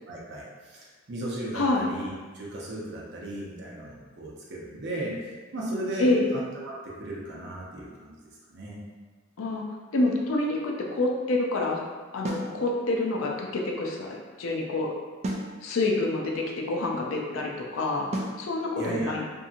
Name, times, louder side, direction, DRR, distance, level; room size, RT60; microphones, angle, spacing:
voice 1, 0.1-5.2 5.5-8.2 8.5-8.8 18.8-19.1, right 1 dB, 60° right, -4 dB, 0.7 m, -36 dB
voice 2, 1.5-1.9 6.0-6.3 9.4-9.6 9.9-11.8 12.1-14.9 15.6-18.1 18.4-19.3, left 2 dB, 80° left, 0 dB, 0.5 m, -27 dB
sound 1, 12.2-12.5 15.2-15.5 18.1-18.4, right 1 dB, 35° right, 0.3 m, -31 dB
2.8 x 2.6 x 2.4 m, 1.4 s
head